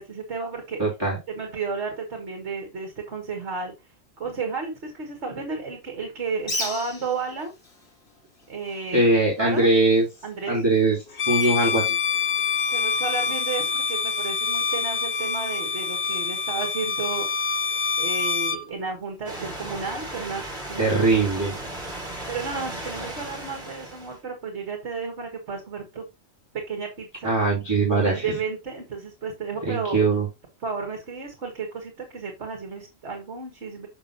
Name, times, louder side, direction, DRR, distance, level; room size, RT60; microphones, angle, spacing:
voice 1, 0.0-0.8 1.3-3.7 4.2-7.5 8.5-9.1 9.4-9.7 10.2-10.6 12.7-17.3 18.0-20.4 20.7-21.2 22.3-26.1 26.7-27.3 27.9-30.0 30.6-33.9, right 4 dB, 55° right, 3 dB, 1.9 m, -32 dB
voice 2, 0.8-1.2 8.9-10.1 10.5-11.0 11.3-12.0 20.8-21.6 27.2-28.3 29.6-30.3, right 2 dB, 20° right, -5 dB, 2.5 m, -21 dB
Bird, 6.4-13.0, left 1 dB, 65° left, 3.7 m, -39 dB
Bowed string instrument, 11.1-18.6, left 5 dB, 40° left, 0.9 m, -26 dB
sound 1, 19.3-24.2, right 1 dB, 35° right, 2.6 m, -36 dB
7.2 x 6.1 x 2.8 m, 0.24 s
omnidirectional pair, 1.4 m